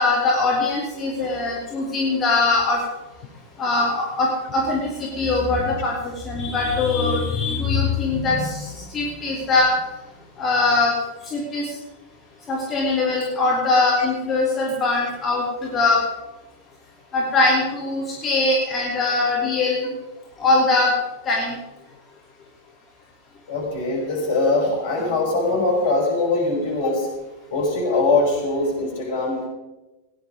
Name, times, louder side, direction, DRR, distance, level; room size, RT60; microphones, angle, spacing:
voice 1, 0.0-2.8 3.6-9.7 10.4-10.9 11.2-11.7 12.5-16.0 17.1-19.9 20.4-20.9 21.2-21.6, left 3 dB, 25° left, -3 dB, 2.9 m, -21 dB
voice 2, 23.5-27.1 27.5-29.5, left 2 dB, 55° left, -2 dB, 6.1 m, -22 dB
17.0 x 10.0 x 5.2 m, 1.1 s
figure-of-eight pair, 90°, 0 cm